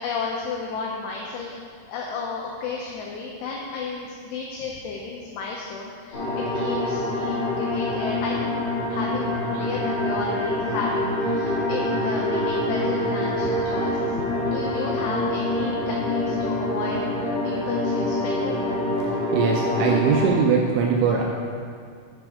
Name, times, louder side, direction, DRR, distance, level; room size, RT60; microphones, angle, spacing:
voice 1, 0.0-1.6 1.9-6.2 6.5-8.6 8.9-13.9 14.5-18.6, left 4 dB, 90° left, -1 dB, 2.4 m, -32 dB
sound 1, 6.1-20.3, left 1 dB, 50° left, 2.6 m, -25 dB
voice 2, 19.1-21.2, right 5 dB, 85° right, 0 dB, 2.6 m, -21 dB
9.2 x 5.2 x 4.8 m, 2.2 s
omnidirectional pair, 5.7 m